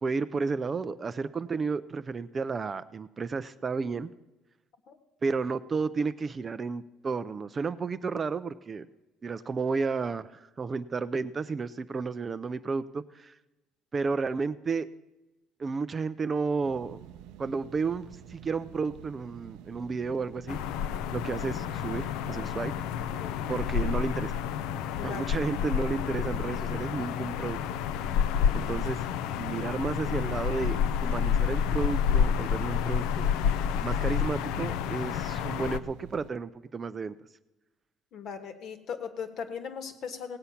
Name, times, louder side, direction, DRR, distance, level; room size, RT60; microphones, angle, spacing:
voice 1, 0.0-4.1 5.2-8.9 9.2-13.4 13.9-14.9 15.6-17.0 17.4-20.6 21.1-22.7 23.5-24.4 25.0-27.6 28.5-29.0 29.4-33.3 33.8-37.1, right 4 dB, 20° right, 13 dB, 0.3 m, -32 dB
sound 1, 16.6-36.3, right 10 dB, 85° right, 0.5 m, -49 dB
sound 2, 20.5-35.8, left 8 dB, 90° left, 0.5 m, -29 dB
voice 2, 23.2-23.5 25.0-25.3 38.1-40.4, left 6 dB, 45° left, 10 dB, 1.2 m, -38 dB
17.5 x 8.2 x 5.7 m, 1.0 s
cardioid pair, 165°, 0 cm